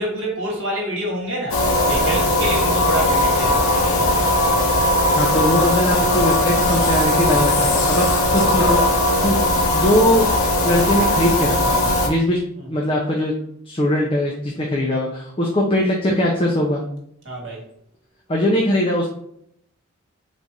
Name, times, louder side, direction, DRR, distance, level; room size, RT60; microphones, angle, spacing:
voice 1, 0.0-4.1 17.2-17.6, right 1 dB, 55° right, -1 dB, 1.4 m, -27 dB
sound 1, 1.5-12.1, left 1 dB, 80° left, 0.9 m, -18 dB
voice 2, 5.1-9.4 9.7-10.3 10.6-12.4 12.7-13.3 13.7-16.8 18.3-19.1, left 1 dB, 25° left, -2 dB, 0.5 m, -21 dB
4.1 x 2.5 x 4.6 m, 0.71 s
head